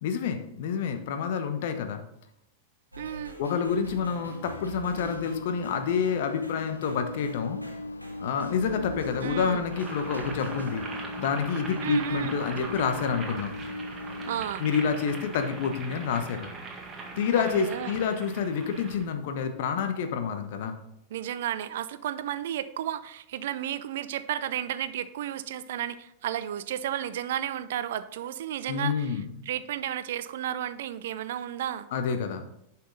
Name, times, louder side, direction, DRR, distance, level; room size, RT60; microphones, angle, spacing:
voice 1, 0.0-2.0 3.4-7.6 8.2-10.8 11.2-13.5 14.6-16.5 17.2-20.7 28.7-29.3 31.9-32.4, left 6 dB, 55° left, 7 dB, 1.1 m, -28 dB
sound 1, 2.9-10.9, equal, 85° right, 1.4 m, -44 dB
voice 2, 3.0-3.4 9.2-9.6 11.8-12.4 14.3-14.7 17.4-18.0 21.1-29.2 29.5-31.9, right 11 dB, 55° right, 14 dB, 0.4 m, -33 dB
sound 2, 4.9-14.5, left 2 dB, 80° left, 0.4 m, -38 dB
Boiling, 9.6-19.0, right 3 dB, 20° right, 1.8 m, -41 dB
10.0 x 5.7 x 3.9 m, 0.80 s
figure-of-eight pair, 90°, 0 cm